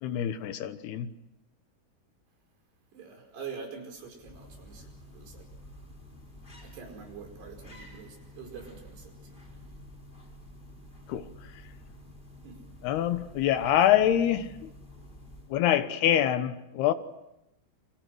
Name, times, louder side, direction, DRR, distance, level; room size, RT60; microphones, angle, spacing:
voice 1, 0.0-1.1 11.1-11.5 12.8-14.7 15.5-16.9, left 11 dB, 75° left, 11 dB, 3.1 m, -25 dB
voice 2, 2.9-4.9 5.1-5.4 6.6-9.4 12.4-12.6, right 6 dB, 75° right, 3 dB, 7.0 m, -45 dB
sound 1, 4.0-15.8, left 1 dB, 10° left, 4.0 m, -50 dB
30.0 x 26.5 x 6.3 m, 0.87 s
omnidirectional pair, 4.8 m